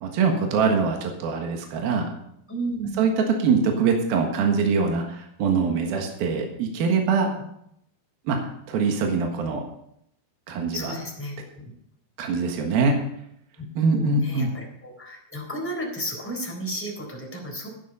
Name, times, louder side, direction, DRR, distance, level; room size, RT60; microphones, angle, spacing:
voice 1, 0.0-2.1 3.0-7.3 8.3-8.4 8.7-9.6 10.5-10.9 12.2-13.0 13.8-14.5, right 5 dB, 70° right, 2 dB, 3.4 m, -23 dB
voice 2, 2.5-3.0 7.3-7.4 10.7-11.7 13.6-17.7, equal, 5° left, -2 dB, 3.5 m, -33 dB
11.5 x 10.5 x 5.5 m, 0.75 s
omnidirectional pair, 4.5 m